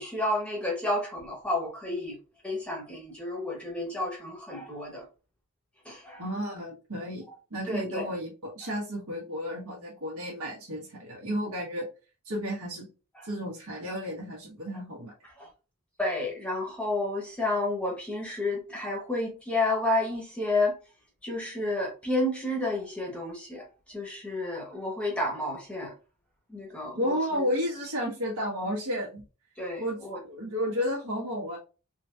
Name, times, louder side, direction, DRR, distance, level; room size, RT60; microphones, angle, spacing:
voice 1, 0.0-2.2 2.4-5.1 5.8-6.2 7.7-8.1 8.6-8.7 13.1-13.3 15.4-15.5 16.0-20.8 21.2-25.9 26.5-27.1 29.6-30.2, left 2 dB, 5° left, 0.9 m, -31 dB
voice 2, 6.2-7.2 7.5-11.8 12.2-12.9 13.2-15.1 26.9-29.2 29.8-30.0 30.2-31.6, equal, 80° right, 1.2 m, -32 dB
3.7 x 2.9 x 2.3 m
head